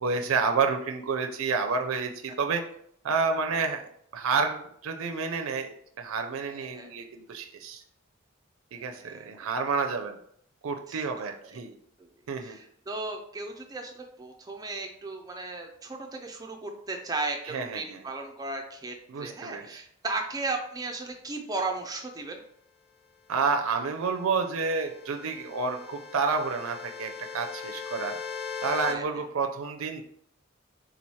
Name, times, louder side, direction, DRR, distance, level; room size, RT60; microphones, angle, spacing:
voice 1, 0.0-2.6 3.0-3.8 4.1-7.8 8.7-10.2 10.6-11.8 12.3-12.6 17.5-18.0 19.1-19.8 23.3-28.2 28.6-30.0, right 4 dB, 80° right, 5 dB, 0.5 m, -29 dB
voice 2, 6.5-6.9 8.8-9.4 10.9-11.6 12.4-18.9 19.2-22.4 28.9-29.0, right 3 dB, 20° right, 3 dB, 0.4 m, -36 dB
sound 1, 24.0-28.9, left 6 dB, 50° left, 0.7 m, -39 dB
3.9 x 3.1 x 4.1 m, 0.67 s
head